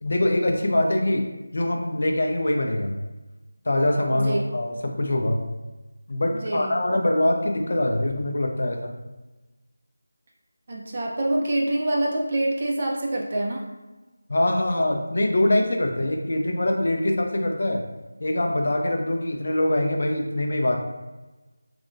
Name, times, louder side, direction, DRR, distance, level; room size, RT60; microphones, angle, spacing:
voice 1, 0.0-1.2 1.5-2.9 3.7-5.4 6.1-8.9 14.3-17.8 18.2-20.9, left 1 dB, 55° left, 2 dB, 0.4 m, -23 dB
voice 2, 6.3-6.8 10.7-13.6, right 1 dB, 30° right, -1 dB, 0.4 m, -26 dB
3.5 x 2.1 x 2.5 m, 1.1 s
figure-of-eight pair, 175°, 0 cm